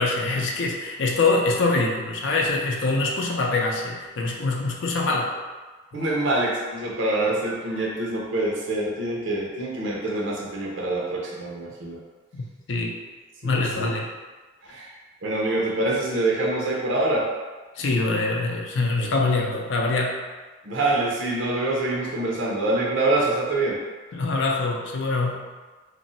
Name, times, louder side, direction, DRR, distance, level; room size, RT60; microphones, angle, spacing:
voice 1, 0.0-5.3 12.3-13.0 13.4-14.1 17.8-20.2 24.1-25.5, left 3 dB, 70° left, 0 dB, 0.5 m, -24 dB
voice 2, 5.9-12.0 13.6-13.9 14.7-14.9 15.2-17.3 20.6-23.8, right 2 dB, 80° right, -3 dB, 0.7 m, -25 dB
2.5 x 2.0 x 3.9 m, 1.3 s
head